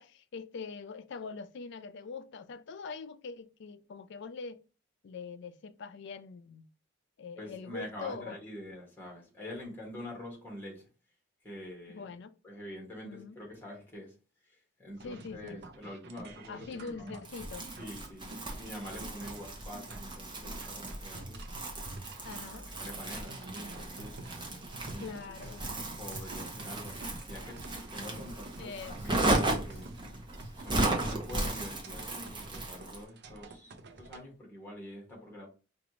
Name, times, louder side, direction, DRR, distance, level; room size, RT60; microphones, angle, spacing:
voice 1, 0.0-4.6 5.0-6.7 7.2-8.4 11.9-12.3 13.0-13.4 15.0-15.6 16.5-17.6 22.2-22.7 25.0-25.6 28.6-29.2, left 5 dB, 60° left, 0.4 m, -43 dB
voice 2, 7.4-10.9 11.4-12.1 12.4-14.1 14.4-17.2 17.8-21.4 22.8-24.2 24.9-25.1 25.4-25.6 26.0-29.9 30.6-35.5, left 1 dB, 10° left, 1.6 m, -46 dB
sound 1, 15.0-34.2, right 2 dB, 55° right, 0.6 m, -49 dB
Crumpling crinkling, 17.2-33.0, right 2 dB, 25° right, 0.9 m, -35 dB
4.8 x 2.5 x 3.0 m
head